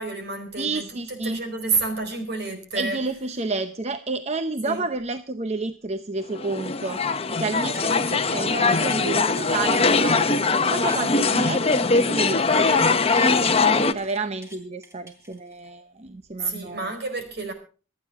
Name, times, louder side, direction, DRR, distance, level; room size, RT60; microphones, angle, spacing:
voice 1, 0.0-3.0 4.6-4.8 16.4-17.5, right 3 dB, 60° right, 6 dB, 4.6 m, -29 dB
voice 2, 0.6-1.4 2.7-10.4 10.7-12.9 13.2-16.9, right 3 dB, 35° right, 10 dB, 0.7 m, -30 dB
sound 1, 6.3-13.9, left 4 dB, 30° left, 0.9 m, -21 dB
sound 2, 7.5-8.3 8.7-11.1 11.4-13.4 13.7-15.7 16.2-16.3, right 1 dB, 15° right, 3.9 m, -46 dB
26.5 x 9.7 x 3.6 m, 0.36 s
head